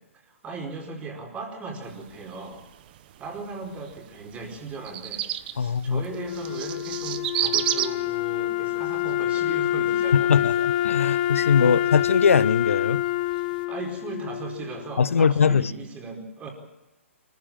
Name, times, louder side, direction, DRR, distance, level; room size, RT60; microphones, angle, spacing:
voice 1, 0.2-2.6 3.2-5.2 5.5-10.6 11.6-11.8 13.7-16.5, right 3 dB, 20° right, 4.8 m, -37 dB
sound 1, 1.8-13.6, right 12 dB, 40° right, 1.0 m, -35 dB
voice 2, 5.6-6.1 10.1-13.0 15.0-15.7, left 6 dB, 70° left, 0.9 m, -21 dB
Wind instrument woodwind instrument, 6.1-15.2, left 12 dB, 40° left, 0.8 m, -26 dB
23.5 x 15.0 x 8.9 m
figure-of-eight pair, 130°, 7 cm